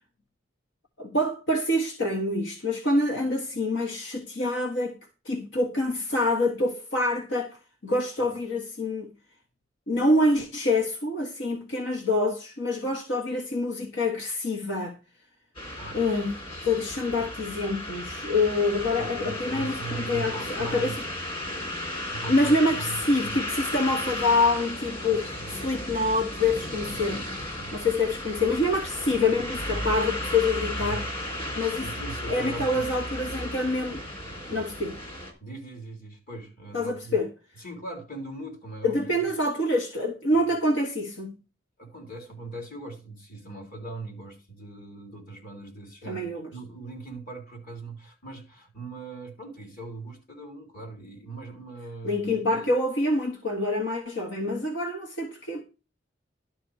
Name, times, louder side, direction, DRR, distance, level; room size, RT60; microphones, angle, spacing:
voice 1, 1.0-5.0 5.2-9.1 9.9-15.0 15.9-16.3 16.6-21.0 22.3-25.2 25.5-27.2 27.7-31.0 31.6-31.9 32.3-34.0 34.5-35.0 36.7-37.3 38.8-41.4 46.1-46.5 52.0-55.6, left 2 dB, 80° left, 1.4 m, -26 dB
sound 1, 15.5-35.3, left 1 dB, 30° left, 3.7 m, -34 dB
voice 2, 19.0-21.0 22.1-23.4 23.9-24.0 25.0-25.9 26.8-27.0 27.6-27.7 29.3-29.4 30.8-31.1 31.8-32.9 34.3-34.6 35.4-37.2 37.6-39.3 40.3-40.4 41.8-52.7, right 3 dB, 50° left, 3.6 m, -40 dB
12.0 x 4.3 x 6.3 m
head